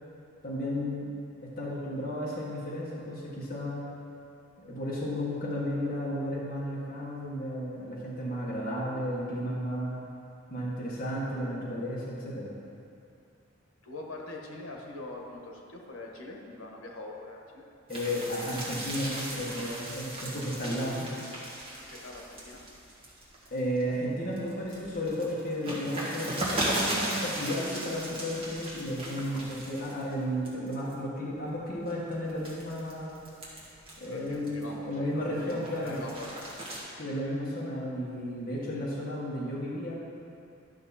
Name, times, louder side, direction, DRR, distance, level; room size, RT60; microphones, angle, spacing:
voice 1, 0.4-1.1 1.4-3.9 4.6-10.0 10.5-12.5 17.9-21.1 23.5-33.2 34.0-36.0 37.0-39.9, equal, 40° left, -7 dB, 1.5 m, -33 dB
voice 2, 13.8-17.7 21.8-22.6 29.2-29.4 34.0-36.5, left 2 dB, 85° left, 0 dB, 1.3 m, -43 dB
sound 1, 17.9-23.8 24.3-30.1 30.4-30.9 31.5-34.8 35.2-36.8, right 1 dB, 25° right, 1.6 m, -36 dB
11.5 x 5.7 x 4.2 m, 2.6 s
head